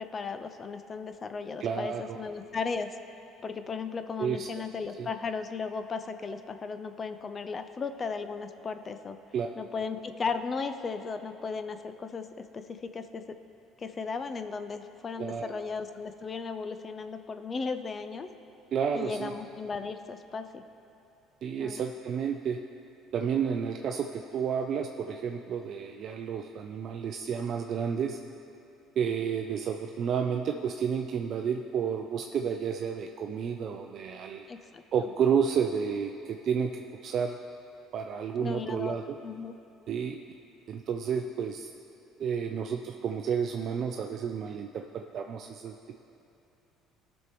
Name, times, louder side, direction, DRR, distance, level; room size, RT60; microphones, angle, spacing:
voice 1, 0.0-2.9 3.4-9.2 9.6-12.3 12.5-13.2 13.8-18.3 18.9-20.6 21.6-21.8 34.5-34.8 38.4-39.0 39.2-39.5, left 5 dB, 35° left, 9 dB, 0.6 m, -36 dB
voice 2, 1.6-2.2 4.2-4.5 5.0-5.1 9.3-9.5 15.2-15.5 18.7-19.3 21.4-22.6 23.1-28.2 29.0-34.5 34.9-37.4 37.9-39.2 39.9-40.2 40.7-41.7 42.2-45.8, right 7 dB, 55° right, 3 dB, 0.5 m, -31 dB
18.0 x 6.3 x 3.1 m, 2.9 s
supercardioid pair, 80°, 0 cm